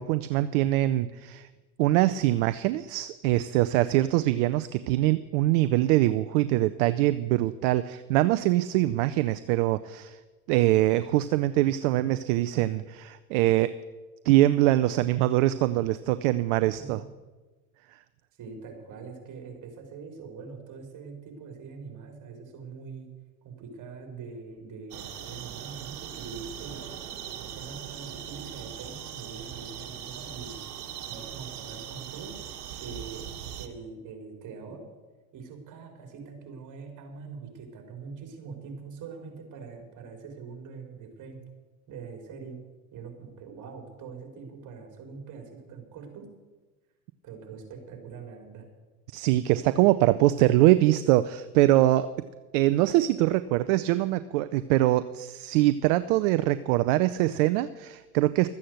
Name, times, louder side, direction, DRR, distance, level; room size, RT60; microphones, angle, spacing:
voice 1, 0.0-1.5 1.8-10.2 10.5-13.7 14.2-17.0 49.1-52.1 52.5-58.5, right 15 dB, 55° right, 13 dB, 0.7 m, -23 dB
voice 2, 18.4-23.1 23.4-27.0 27.4-30.6 31.1-32.4 32.8-34.9 35.3-41.4 41.9-42.6 42.9-46.3 47.2-48.7, right 5 dB, 40° right, 3 dB, 4.1 m, -43 dB
sound 1, 24.9-33.7, right 9 dB, 75° right, 1.5 m, -40 dB
13.0 x 8.5 x 7.8 m, 1.2 s
hypercardioid pair, 90°, 46 cm